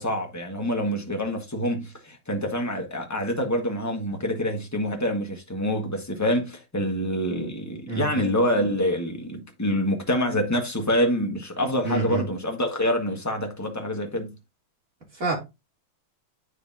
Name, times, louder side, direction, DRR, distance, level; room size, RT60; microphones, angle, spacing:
voice 1, 0.0-14.4, equal, 10° left, 1.1 m, -26 dB
voice 2, 7.9-8.3 11.8-12.2 15.1-15.4, right 4 dB, 40° right, 3.4 m, -27 dB
9.4 x 4.9 x 2.7 m
omnidirectional pair, 2.2 m